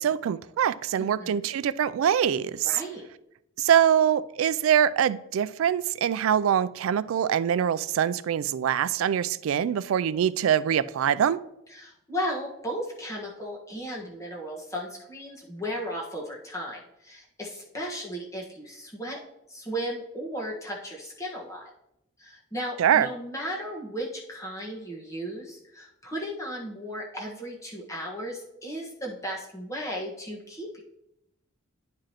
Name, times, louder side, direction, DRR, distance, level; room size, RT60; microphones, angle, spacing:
voice 1, 0.0-2.7 3.6-11.4 22.8-23.1, right 9 dB, 80° right, 16 dB, 0.3 m, -24 dB
voice 2, 1.0-1.5 2.6-3.0 11.7-19.2 19.5-21.7 22.2-30.8, equal, 15° left, -2 dB, 1.4 m, -35 dB
10.5 x 4.8 x 2.9 m, 0.83 s
head